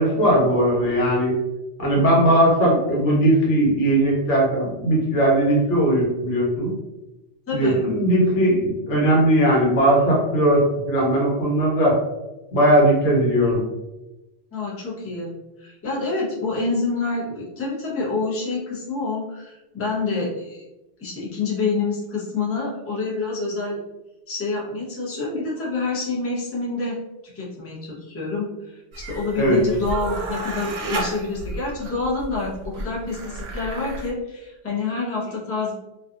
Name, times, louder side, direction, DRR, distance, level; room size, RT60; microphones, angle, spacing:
voice 1, 0.0-1.4 1.8-6.7 7.5-12.0 12.5-13.6 29.4-29.6, right 1 dB, 75° left, -4 dB, 1.2 m, -19 dB
voice 2, 7.5-7.8 14.5-15.3 15.6-20.6 21.0-23.8 24.3-27.0 27.2-35.7, left 3 dB, 15° left, -6 dB, 0.5 m, -27 dB
sound 1, 28.9-34.1, right 2 dB, 85° right, 0.9 m, -32 dB
2.6 x 2.3 x 2.4 m, 1.0 s
omnidirectional pair, 1.2 m